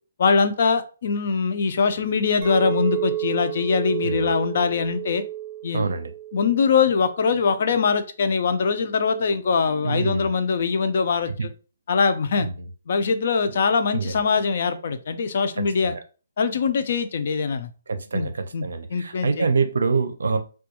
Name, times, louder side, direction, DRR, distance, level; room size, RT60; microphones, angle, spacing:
voice 1, 0.2-5.2 5.6-5.9 6.3-11.5 11.9-12.5 12.9-15.9 16.4-17.7 18.1-18.3 18.5-18.6 18.9-19.5, left 5 dB, 45° left, 0.3 m, -22 dB
Chink clink, 2.4-6.8 7.1-7.5, right 13 dB, 25° right, 0.5 m, -31 dB
voice 2, 4.0-4.3 5.7-6.1 9.8-10.3 12.4-12.7 13.9-14.2 15.8-16.0 17.9-20.4, right 4 dB, 85° right, 0.5 m, -25 dB
2.3 x 2.2 x 2.8 m
hypercardioid pair, 170°, 0 cm